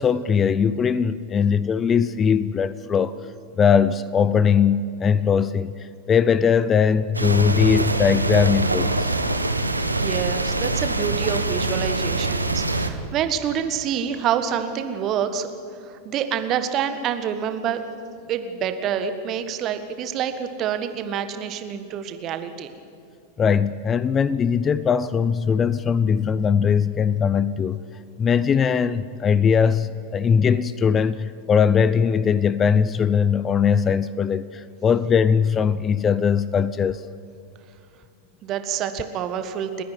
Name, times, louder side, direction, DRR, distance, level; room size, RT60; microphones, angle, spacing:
voice 1, 0.0-3.2 3.6-9.1 23.4-27.8 28.2-37.1, left 7 dB, 25° left, 17 dB, 0.5 m, -20 dB
sound 1, 7.1-12.9, right 2 dB, 85° right, 1.2 m, -24 dB
voice 2, 10.0-15.5 15.8-17.8 18.3-22.7 38.4-39.8, right 8 dB, 35° right, 9 dB, 1.6 m, -27 dB
29.5 x 10.5 x 9.3 m, 2.5 s
figure-of-eight pair, 90°, 0 cm